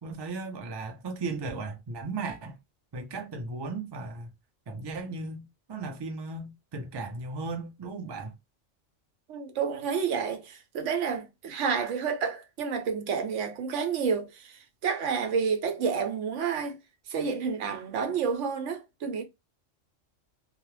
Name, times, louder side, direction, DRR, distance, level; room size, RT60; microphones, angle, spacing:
voice 1, 0.0-2.6 2.9-4.3 4.7-8.3, right 3 dB, 40° right, 0.3 m, -36 dB
voice 2, 9.3-16.8 17.1-19.2, right 6 dB, 75° right, 0.9 m, -30 dB
2.3 x 2.1 x 3.1 m
omnidirectional pair, 1.3 m